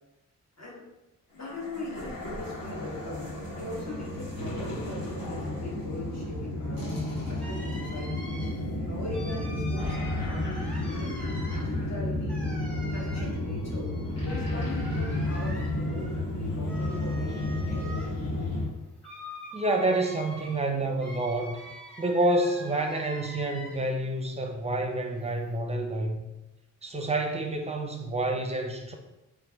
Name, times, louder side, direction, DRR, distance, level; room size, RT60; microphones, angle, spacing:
voice 1, 1.3-8.2 8.9-11.4 11.8-12.4 12.7-13.9 14.2-18.2, left 2 dB, 50° left, -4 dB, 1.4 m, -40 dB
sound 1, 1.5-18.7, left 1 dB, 85° left, 1.4 m, -32 dB
sound 2, 7.4-24.1 24.4-25.6, equal, 5° left, 0.8 m, -45 dB
voice 2, 19.5-21.6 22.0-26.2 26.8-28.9, right 2 dB, 20° right, 3 dB, 0.5 m, -28 dB
3.3 x 3.2 x 3.4 m, 0.99 s
wide cardioid pair, 105°, 33 cm